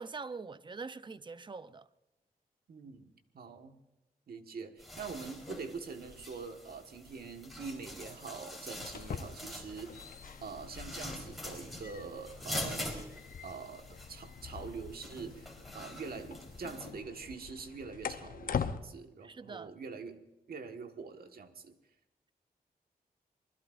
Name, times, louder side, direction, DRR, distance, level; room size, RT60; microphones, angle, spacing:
voice 1, 0.0-1.9 19.2-19.7, right 4 dB, 30° right, 0.6 m, -43 dB
voice 2, 2.7-3.8 4.3-13.1 13.4-20.2 20.5-21.8, right 5 dB, 75° right, 1.5 m, -44 dB
sound 1, 4.8-16.9, left 1 dB, ahead, 4.0 m, -45 dB
sound 2, 8.7-18.8, left 7 dB, 65° left, 0.8 m, -43 dB
26.5 x 20.5 x 2.6 m
wide cardioid pair, 105°, 16 cm